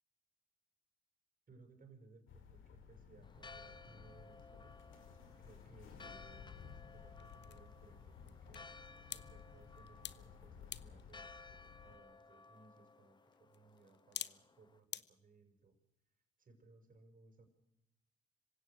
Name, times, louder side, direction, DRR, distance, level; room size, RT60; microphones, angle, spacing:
voice 1, 1.5-4.8 5.4-8.6 9.1-15.8 16.4-17.5, right 3 dB, 45° right, 6 dB, 6.2 m, -64 dB
sound 1, 2.3-12.0, left 7 dB, 80° left, 4.1 m, -56 dB
Church bell, 3.2-14.8, left 3 dB, 20° left, 1.1 m, -58 dB
Toy crackle, 7.1-15.0, left 10 dB, 60° left, 1.0 m, -53 dB
26.5 x 16.5 x 6.6 m, 0.86 s
cardioid pair, 90°, 20 cm